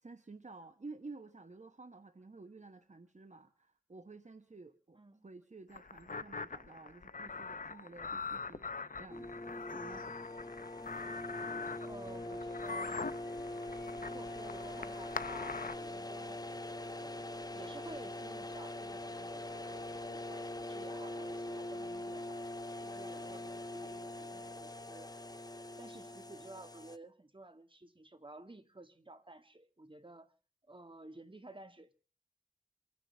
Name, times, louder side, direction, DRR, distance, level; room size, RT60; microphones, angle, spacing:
voice 1, 0.0-8.6 9.0-9.5 9.7-10.1, right 3 dB, 60° right, 1.1 m, -52 dB
voice 2, 4.9-5.3 11.8-13.0 14.0-16.4 16.9-22.4 22.8-25.5 25.8-30.3 30.7-31.9, right 2 dB, 40° right, 1.8 m, -53 dB
sound 1, 5.7-15.7, left 4 dB, 80° left, 0.8 m, -43 dB
sound 2, 9.1-27.0, left 1 dB, 30° left, 0.9 m, -43 dB
27.5 x 10.0 x 3.5 m
wide cardioid pair, 50°, 14 cm